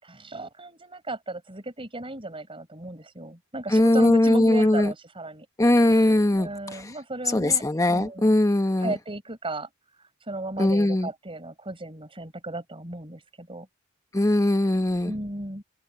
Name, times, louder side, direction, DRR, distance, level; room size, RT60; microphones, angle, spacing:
voice 1, 0.0-5.5 6.4-7.6 7.9-8.4 8.8-9.7 10.3-13.7 15.0-15.6, right 2 dB, 25° right, 4.7 m, -35 dB
voice 2, 3.7-4.9 5.6-6.5 7.3-8.9 10.6-11.1 14.1-15.1, left 1 dB, 15° left, 1.0 m, -20 dB
open air
head